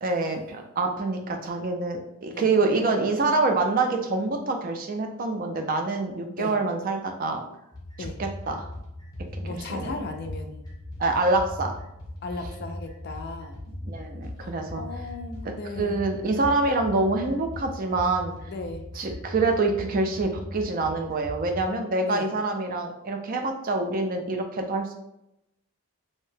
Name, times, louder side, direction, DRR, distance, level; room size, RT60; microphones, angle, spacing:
voice 1, 0.0-7.4 8.0-8.7 9.5-9.9 11.0-11.7 13.8-14.8 15.8-18.3 19.0-24.9, right 3 dB, 40° right, 4 dB, 0.3 m, -26 dB
sound 1, 7.7-21.7, left 1 dB, 20° left, 0.8 m, -39 dB
voice 2, 9.4-10.7 12.2-13.6 14.4-16.0 18.4-18.9 22.0-22.3, left 3 dB, 45° left, 6 dB, 0.3 m, -36 dB
2.7 x 2.1 x 3.2 m, 0.84 s
head